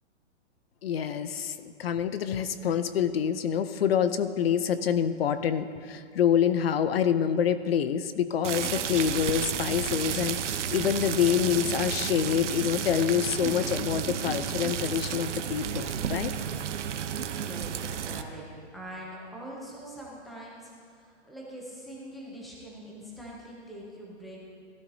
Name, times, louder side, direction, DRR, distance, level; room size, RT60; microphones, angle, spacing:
voice 1, 0.8-16.3, left 8 dB, 55° left, 12 dB, 0.6 m, -27 dB
sound 1, 8.4-18.2, right 8 dB, 80° right, 0.8 m, -32 dB
voice 2, 17.0-18.4 18.7-24.4, equal, ahead, -4 dB, 0.6 m, -43 dB
17.5 x 12.5 x 2.7 m, 2.2 s
hypercardioid pair, 165°, 35 cm